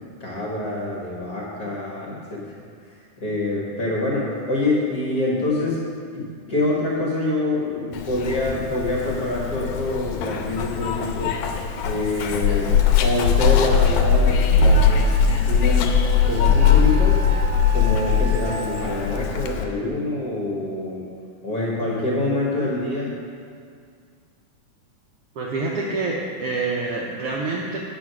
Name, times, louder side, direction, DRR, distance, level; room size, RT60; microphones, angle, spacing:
voice 1, 0.0-2.6 2.8-5.9 6.1-11.4 11.8-15.1 15.4-16.0 16.3-17.3 17.7-21.1 21.4-23.2, left 2 dB, 50° left, -4 dB, 1.1 m, -26 dB
Zipper (clothing), 7.9-19.7, left 6 dB, 85° left, 2.2 m, -20 dB
Wind instrument woodwind instrument, 14.7-19.3, right 7 dB, 60° right, 1.9 m, -36 dB
voice 2, 25.4-27.8, right 3 dB, 85° right, -3 dB, 1.3 m, -26 dB
9.0 x 6.2 x 6.0 m, 2.2 s
omnidirectional pair, 3.6 m